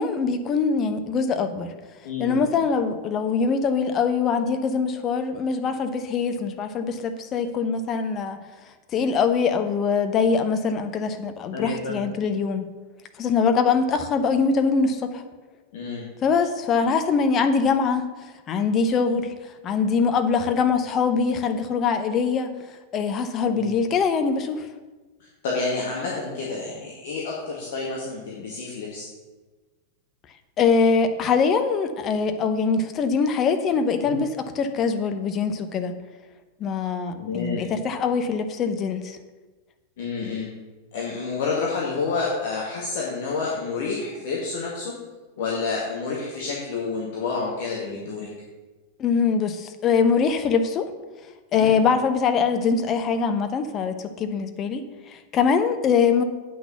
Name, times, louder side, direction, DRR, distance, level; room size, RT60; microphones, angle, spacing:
voice 1, 0.0-1.7 2.2-8.4 8.9-12.6 13.2-15.2 16.2-18.1 18.5-19.3 19.6-22.5 22.9-24.7 30.6-35.9 36.6-39.2 49.0-50.9 51.5-56.2, left 5 dB, 30° left, 8 dB, 0.9 m, -23 dB
voice 2, 2.0-2.5 11.5-12.0 15.7-16.1 23.5-23.7 25.2-29.1 34.0-34.2 37.1-37.7 40.0-40.5 40.9-44.9 45.4-48.3 51.5-51.7, left 4 dB, 55° left, -3 dB, 1.8 m, -29 dB
8.5 x 6.1 x 7.0 m, 1.2 s
figure-of-eight pair, 90°, 0 cm